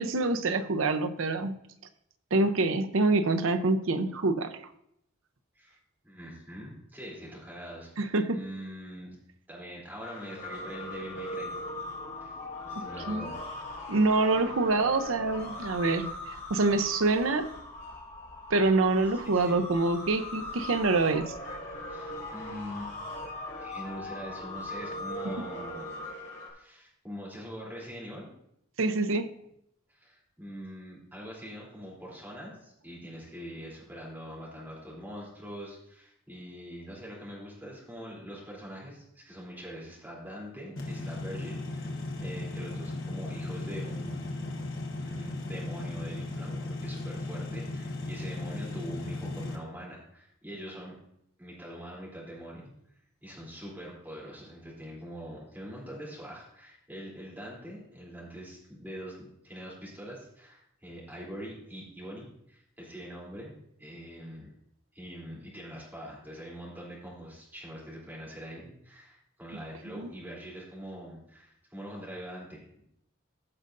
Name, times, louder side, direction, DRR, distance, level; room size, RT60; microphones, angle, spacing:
voice 1, 0.0-1.5 2.3-4.5 8.0-8.4 13.1-13.2 13.9-16.1 16.5-17.5 18.5-21.6 28.8-29.3 70.0-70.1, right 3 dB, 90° right, 9 dB, 0.7 m, -26 dB
voice 2, 6.0-9.1 9.5-11.5 12.2-12.4 12.6-13.3 19.2-19.6 21.9-22.9 23.6-25.9 26.4-28.3 29.9-44.6 45.0-50.9 51.4-52.7 53.2-64.5 64.9-72.8, equal, 10° right, -5 dB, 3.2 m, -43 dB
sound 1, 10.0-26.5, left 1 dB, 40° left, 2.9 m, -40 dB
sound 2, 40.8-49.6, left 2 dB, 75° left, 1.3 m, -36 dB
15.5 x 6.5 x 2.6 m, 0.75 s
head